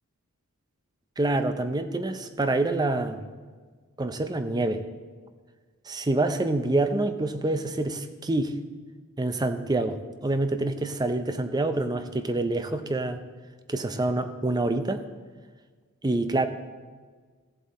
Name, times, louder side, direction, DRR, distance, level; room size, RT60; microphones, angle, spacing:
voice 1, 1.2-3.2 4.0-4.8 5.9-8.5 9.2-13.2 13.7-15.0 16.0-16.5, right 2 dB, 20° right, 9 dB, 0.5 m, -26 dB
14.5 x 7.5 x 4.1 m, 1.5 s
head